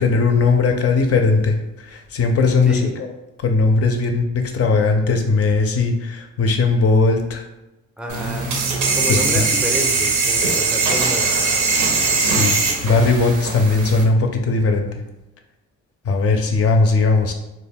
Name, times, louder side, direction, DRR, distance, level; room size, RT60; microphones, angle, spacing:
voice 1, 0.0-3.1 3.4-7.4 9.1-9.4 12.2-15.0 16.1-17.3, left 3 dB, 50° left, 4 dB, 0.4 m, -18 dB
voice 2, 2.7-3.0 8.0-8.6 9.0-11.3, equal, 5° right, 1 dB, 0.4 m, -28 dB
sound 1, 8.1-14.0, right 4 dB, 90° right, 0.6 m, -20 dB
2.2 x 2.0 x 3.4 m, 0.95 s
cardioid pair, 90°, 30 cm